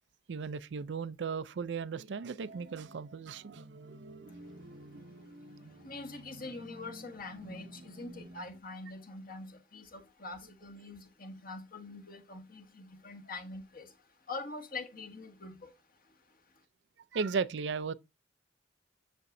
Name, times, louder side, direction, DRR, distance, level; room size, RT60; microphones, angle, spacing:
voice 1, 0.3-3.6 17.1-17.9, right 5 dB, 70° right, 0.4 m, -35 dB
sound 1, 2.4-8.6, right 1 dB, 90° right, 1.0 m, -51 dB
voice 2, 5.8-13.9 14.3-15.7, left 3 dB, 50° left, 1.7 m, -44 dB
7.3 x 6.7 x 2.6 m
head